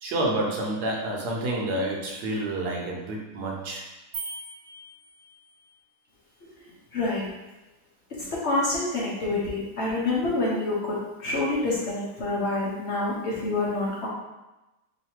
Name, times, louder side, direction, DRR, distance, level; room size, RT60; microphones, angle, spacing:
voice 1, 0.0-3.9, right 1 dB, 65° right, -1 dB, 1.2 m, -29 dB
sound 1, 4.1-5.7, right 3 dB, 45° right, 1.1 m, -39 dB
voice 2, 6.9-7.3 8.3-14.1, left 2 dB, 55° left, -5 dB, 0.8 m, -27 dB
3.2 x 2.7 x 4.4 m, 1.0 s
omnidirectional pair, 1.9 m